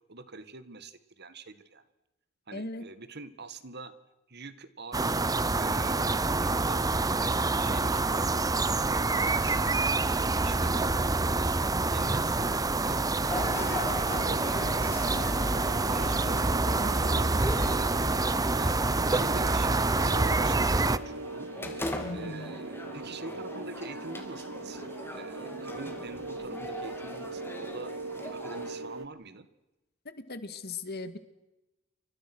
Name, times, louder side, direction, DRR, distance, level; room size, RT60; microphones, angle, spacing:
voice 1, 0.1-1.8 2.5-3.9 4.3-8.3 8.8-11.1 11.9-15.2 15.7-21.5 22.1-29.5, right 3 dB, 55° right, 13 dB, 2.0 m, -45 dB
voice 2, 2.5-2.8 22.0-22.5 30.1-31.2, left 3 dB, 50° left, 11 dB, 2.2 m, -38 dB
sound 1, 4.9-21.0, right 3 dB, 20° right, 0.8 m, -27 dB
sound 2, 13.2-28.7, left 1 dB, 10° left, 3.4 m, -41 dB
sound 3, 13.3-29.1, right 3 dB, 85° right, 1.2 m, -41 dB
29.0 x 25.0 x 6.4 m, 0.98 s
head